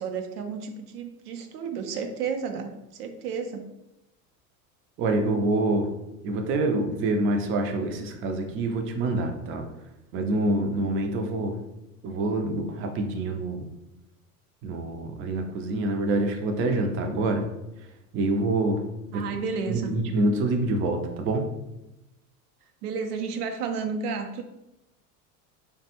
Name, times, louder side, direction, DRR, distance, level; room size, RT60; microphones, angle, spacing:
voice 1, 0.0-3.7 19.1-19.9 22.8-24.4, right 5 dB, 85° right, 5 dB, 0.6 m, -32 dB
voice 2, 5.0-5.9 6.2-9.7 10.1-11.6 12.0-13.7 14.6-17.5 18.1-18.8 19.1-19.2 19.7-21.5, right 2 dB, 30° right, 4 dB, 0.4 m, -26 dB
3.2 x 2.2 x 2.8 m, 0.92 s
hypercardioid pair, 90°, 45 cm